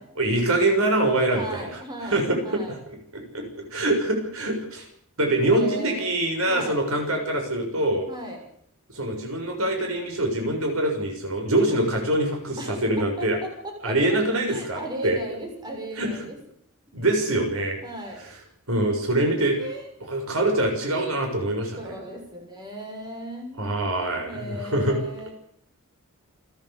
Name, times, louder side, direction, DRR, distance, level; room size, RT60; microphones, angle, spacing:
voice 1, 0.2-1.7 2.0-2.6 2.9-4.9 5.2-8.1 8.9-13.4 13.8-15.2 16.0-16.1 16.9-17.8 18.7-19.6 20.1-22.0 23.6-25.0, right 1 dB, 75° right, 2 dB, 6.8 m, -24 dB
voice 2, 1.3-2.8 5.4-6.1 6.4-6.8 8.1-8.5 12.6-14.2 14.5-16.4 17.8-18.2 19.6-19.8 21.8-23.6 24.2-25.3, right 1 dB, 20° right, 1 dB, 6.4 m, -36 dB
29.5 x 11.0 x 8.4 m, 0.62 s
head